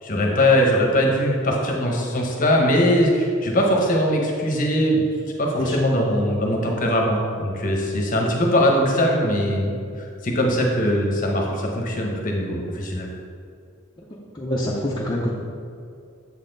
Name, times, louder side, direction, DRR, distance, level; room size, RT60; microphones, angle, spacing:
voice 1, 0.0-5.0 5.4-13.1, equal, 40° left, 0 dB, 0.8 m, -21 dB
voice 2, 14.3-15.3, left 1 dB, 20° left, -6 dB, 0.5 m, -25 dB
7.2 x 4.1 x 3.8 m, 2.3 s
head